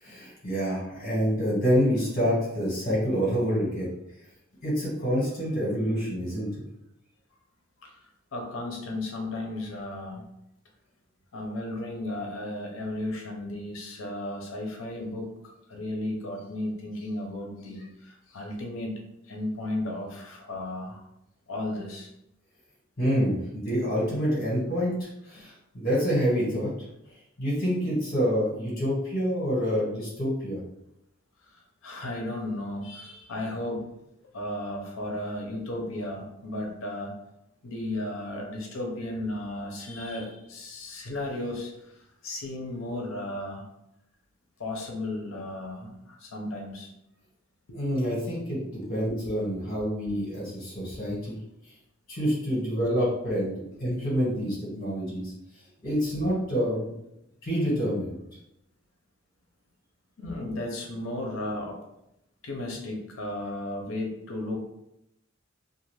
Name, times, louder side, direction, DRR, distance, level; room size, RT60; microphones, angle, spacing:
voice 1, 0.0-3.9 4.6-6.6 23.0-26.7 27.4-30.6 47.7-48.6 48.9-51.4 52.1-53.5 53.8-55.3 55.8-56.9 57.4-58.2, equal, 45° left, -6 dB, 1.5 m, -27 dB
voice 2, 7.8-10.3 11.3-21.0 21.5-22.1 31.4-33.8 34.3-37.1 37.6-43.7 44.6-46.9 47.7-47.8 51.3-51.4 52.5-52.6 53.5-53.6 55.8-56.0 60.2-61.8 62.4-64.7, left 1 dB, 80° left, 1 dB, 0.7 m, -35 dB
2.5 x 2.5 x 3.2 m, 0.84 s
head